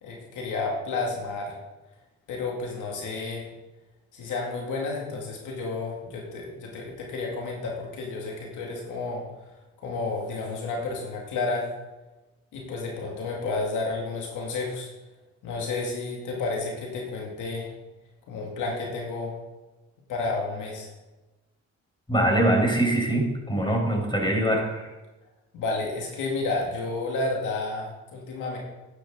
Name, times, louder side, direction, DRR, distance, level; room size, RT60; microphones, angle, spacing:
voice 1, 0.0-1.6 2.3-3.5 4.1-9.3 9.8-11.7 12.5-14.9 15.4-17.7 18.3-19.4 20.1-20.9 25.5-28.6, left 3 dB, 85° left, -1 dB, 2.2 m, -31 dB
voice 2, 22.1-24.9, right 1 dB, 15° left, 1 dB, 4.5 m, -23 dB
11.5 x 10.0 x 3.8 m, 1.1 s
supercardioid pair, 60°, 30 cm